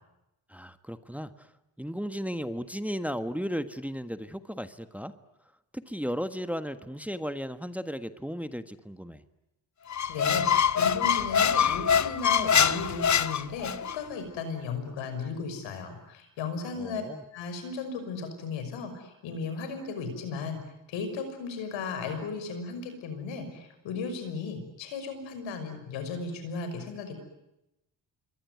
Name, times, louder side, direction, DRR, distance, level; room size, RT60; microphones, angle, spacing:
voice 1, 0.5-1.5 1.8-5.1 5.7-9.2 16.8-17.2, equal, 5° right, 11 dB, 1.5 m, -35 dB
voice 2, 9.8-17.0 17.3-20.6 20.9-27.2, left 4 dB, 85° left, 8 dB, 5.9 m, -35 dB
Squeak, 9.9-14.0, left 7 dB, 40° left, 1.0 m, -24 dB
27.0 x 23.0 x 9.6 m, 0.91 s
supercardioid pair, 55°, 44 cm